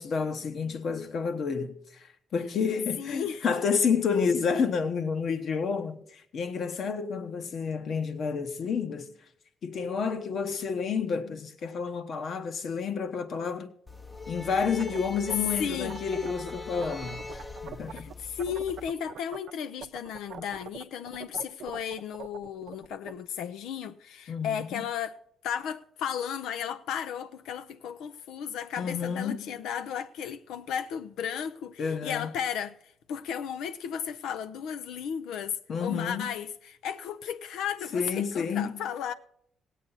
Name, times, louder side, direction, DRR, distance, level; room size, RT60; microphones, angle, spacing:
voice 1, 0.0-9.1 9.6-13.7 14.3-18.1 24.3-24.8 28.8-29.5 31.8-32.4 35.7-36.3 37.9-38.8, left 6 dB, 60° left, 1.0 m, -30 dB
voice 2, 3.0-3.4 15.6-16.0 17.9-25.2 25.4-32.8 33.1-39.1, left 8 dB, 85° left, 0.5 m, -34 dB
sound 1, 13.9-18.9, left 3 dB, 15° left, 0.6 m, -42 dB
sound 2, 14.5-18.1 18.4-19.5 19.8-23.2, right 9 dB, 70° right, 0.6 m, -42 dB
17.0 x 8.4 x 4.0 m
cardioid pair, 90°, 0 cm